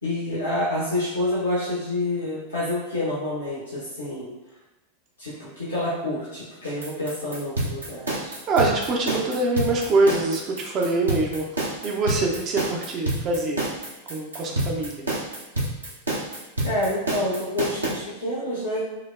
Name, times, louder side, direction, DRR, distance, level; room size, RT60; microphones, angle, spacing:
voice 1, 0.0-4.3 5.2-8.4 16.6-18.9, left 1 dB, 75° left, -8 dB, 0.8 m, -28 dB
sound 1, 6.6-17.9, right 1 dB, 75° right, 0.8 m, -28 dB
voice 2, 8.5-13.6 14.1-15.1, right 2 dB, 35° right, 0 dB, 0.5 m, -24 dB
4.9 x 2.0 x 2.3 m, 1.0 s
figure-of-eight pair, 90°, 0 cm